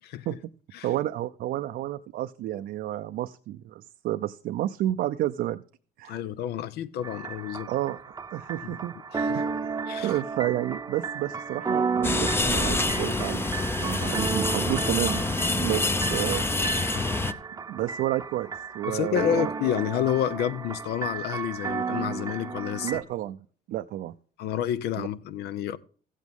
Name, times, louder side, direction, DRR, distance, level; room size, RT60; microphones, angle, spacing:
voice 1, 0.8-5.6 6.0-6.2 7.7-9.0 9.3-9.7 10.0-15.2 15.5-16.5 17.7-19.5 22.8-23.4 23.7-24.1 25.0-25.1, right 13 dB, 65° right, 0.5 m, -31 dB
voice 2, 6.0-7.7 8.6-8.8 9.1-9.4 9.9-10.2 16.9-17.0 18.9-23.0 24.4-25.8, left 10 dB, 75° left, 0.6 m, -29 dB
sound 1, 7.0-23.0, right 5 dB, 20° right, 0.7 m, -33 dB
sound 2, 12.0-17.3, left 3 dB, 15° left, 0.6 m, -26 dB
14.5 x 8.3 x 3.6 m
cardioid pair, 110°, 17 cm